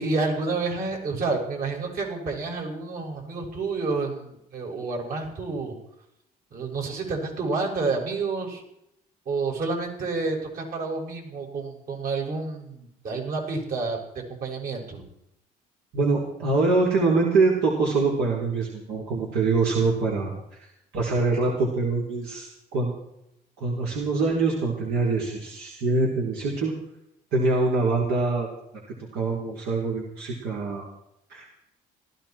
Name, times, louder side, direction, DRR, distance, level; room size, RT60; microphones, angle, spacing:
voice 1, 0.0-5.7 6.5-8.6 9.2-14.0 14.3-15.0, right 3 dB, 60° right, 0 dB, 6.4 m, -29 dB
voice 2, 15.9-20.3 20.6-23.0 23.6-26.7 27.3-28.5 29.1-30.8 31.3-31.5, right 3 dB, 80° right, -3 dB, 4.2 m, -24 dB
19.0 x 15.0 x 4.5 m, 0.78 s
cardioid pair, 110°, 17 cm